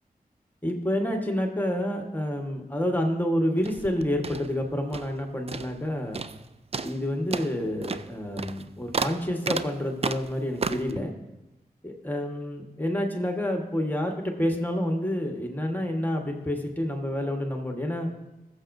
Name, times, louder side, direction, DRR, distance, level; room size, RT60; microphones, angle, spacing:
voice 1, 0.6-6.2 6.8-11.1 11.8-18.1, left 1 dB, 10° left, 2 dB, 1.4 m, -28 dB
sound 1, 3.6-5.2 5.5-5.9 6.1-6.4 6.7-11.0, right 5 dB, 40° right, 0.4 m, -33 dB
20.0 x 7.2 x 2.6 m, 1.0 s
wide cardioid pair, 65°, 16 cm